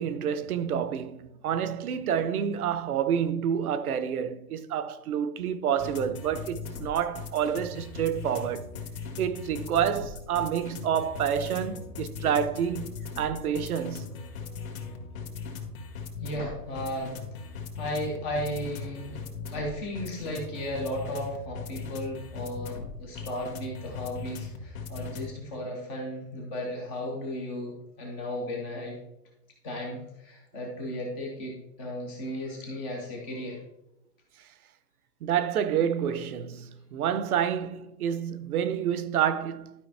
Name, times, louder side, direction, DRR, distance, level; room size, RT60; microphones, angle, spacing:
voice 1, 0.0-8.7 9.2-12.9 13.2-14.1 35.2-39.7, right 8 dB, 65° right, 0.8 m, -28 dB
sound 1, 5.8-25.3, left 5 dB, 60° left, 1.8 m, -39 dB
voice 2, 16.2-17.1 17.8-19.2 19.5-29.0 29.6-33.6, equal, 10° left, 0.4 m, -35 dB
12.0 x 5.0 x 3.3 m
hypercardioid pair, 140°, 48 cm